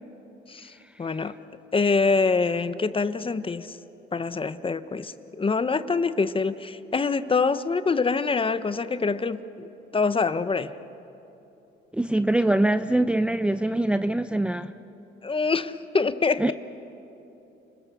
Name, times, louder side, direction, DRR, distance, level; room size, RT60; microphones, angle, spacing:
voice 1, 1.0-1.3 1.7-3.8 4.1-9.4 9.9-10.7 15.2-16.5, left 4 dB, 25° left, 13 dB, 0.9 m, -25 dB
voice 2, 11.9-14.7 16.4-16.5, right 1 dB, 5° right, 10 dB, 0.5 m, -23 dB
30.0 x 21.0 x 6.9 m, 2.9 s
cardioid pair, 90°, 20 cm